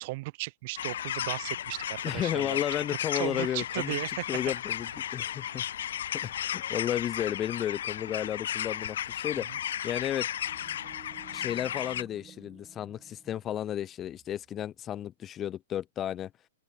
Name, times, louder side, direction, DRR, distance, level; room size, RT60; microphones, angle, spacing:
voice 1, 0.0-2.6 3.1-4.3 9.4-9.6, right 23 dB, 40° right, 2.1 m, -36 dB
sound 1, 0.8-12.0, left 10 dB, 55° left, 0.8 m, -34 dB
sound 2, 2.0-2.2 2.5-3.3 3.7-4.5 4.8-5.1 5.5-5.8, equal, 90° left, 2.6 m, -53 dB
voice 2, 2.0-4.0 4.3-5.6 6.1-9.5 9.8-10.3 11.3-16.3, left 11 dB, 20° left, 0.6 m, -33 dB
sound 3, 10.5-14.7, right 9 dB, 20° right, 3.6 m, -55 dB
open air
figure-of-eight pair, 105°, 0 cm